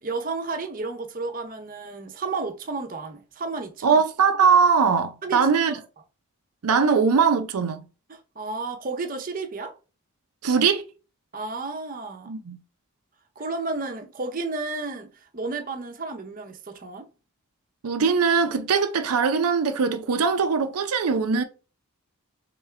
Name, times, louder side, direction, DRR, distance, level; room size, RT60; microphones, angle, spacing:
voice 1, 0.0-4.0 5.2-5.8 8.1-9.7 11.3-12.3 13.4-15.1 15.3-17.1, right 3 dB, 40° right, 0.7 m, -32 dB
voice 2, 3.8-5.8 6.6-7.8 10.4-10.8 12.3-12.6 17.8-21.4, right 5 dB, 85° right, 0.5 m, -21 dB
3.8 x 3.5 x 3.2 m
head